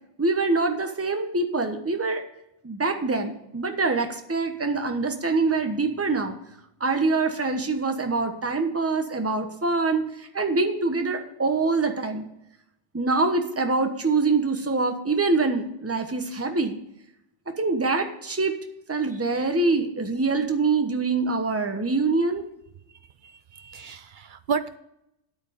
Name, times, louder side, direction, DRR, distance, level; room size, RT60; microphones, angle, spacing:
voice 1, 0.2-2.2 2.6-6.3 6.8-12.3 12.9-16.8 17.6-18.6 18.9-22.4, right 3 dB, 10° right, 5 dB, 0.9 m, -24 dB
voice 2, 23.2-24.8, right 6 dB, 55° right, 12 dB, 0.5 m, -32 dB
9.5 x 8.6 x 5.1 m, 0.82 s
omnidirectional pair, 1.3 m